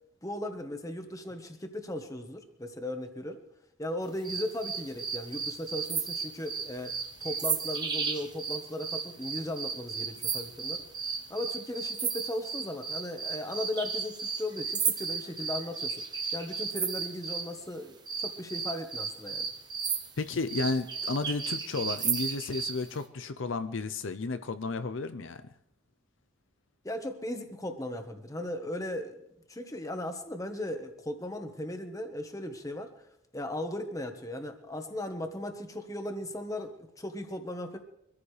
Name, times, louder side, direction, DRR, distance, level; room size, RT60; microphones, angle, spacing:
voice 1, 0.2-3.4 3.8-10.9 11.3-16.0 16.3-19.5 26.8-29.2 29.5-32.9 33.3-37.8, left 1 dB, 15° left, 6 dB, 1.3 m, -37 dB
sound 1, 4.2-17.5 18.1-22.8, right 6 dB, 20° right, 1.2 m, -34 dB
voice 2, 20.2-25.4, left 3 dB, 70° left, 11 dB, 0.6 m, -32 dB
24.0 x 14.5 x 3.3 m, 0.78 s
head